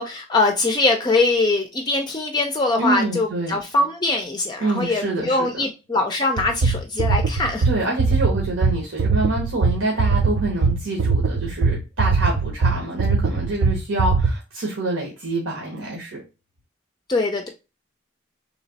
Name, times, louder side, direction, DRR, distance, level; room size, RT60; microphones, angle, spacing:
voice 1, 0.0-7.7 17.1-17.5, left 2 dB, 20° left, 3 dB, 0.4 m, -22 dB
voice 2, 2.8-3.6 4.6-5.6 7.6-16.2, right 2 dB, 85° right, -2 dB, 1.1 m, -26 dB
sound 1, 6.4-14.3, right 4 dB, 70° right, 0.4 m, -20 dB
3.3 x 3.0 x 3.9 m, 0.28 s
head